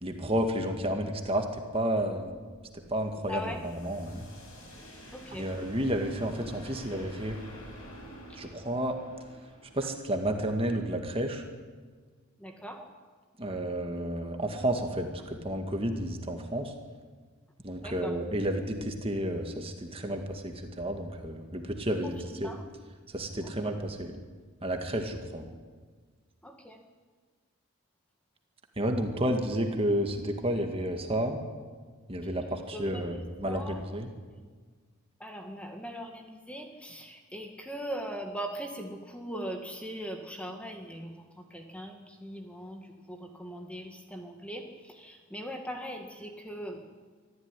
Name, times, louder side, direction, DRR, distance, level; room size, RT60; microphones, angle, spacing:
voice 1, 0.0-1.5 1.7-2.4 2.7-4.3 5.3-7.4 8.4-9.0 9.7-11.4 13.4-16.7 17.6-22.5 23.1-24.1 24.6-25.5 28.8-31.4 32.1-34.1, right 1 dB, 25° right, 4 dB, 2.0 m, -31 dB
sound 1, 2.4-10.9, equal, 80° left, 7.1 m, -49 dB
voice 2, 3.3-3.6 5.1-5.5 12.4-12.8 17.8-18.1 22.4-22.6 23.6-23.7 26.4-26.8 32.7-33.8 35.2-41.2 41.5-46.8, equal, 5° left, 3 dB, 1.9 m, -40 dB
25.0 x 14.5 x 9.9 m, 1.5 s
head